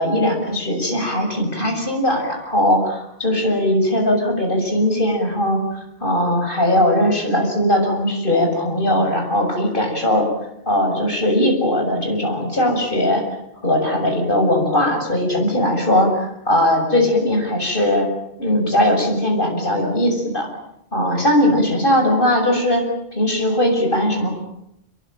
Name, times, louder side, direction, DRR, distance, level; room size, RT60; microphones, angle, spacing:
voice 1, 0.0-10.3 10.7-13.2 13.6-18.1 18.4-20.5 20.9-22.8 23.1-24.4, left 1 dB, 55° left, 2 dB, 7.3 m, -19 dB
27.5 x 22.5 x 9.3 m, 0.80 s
omnidirectional pair, 1.1 m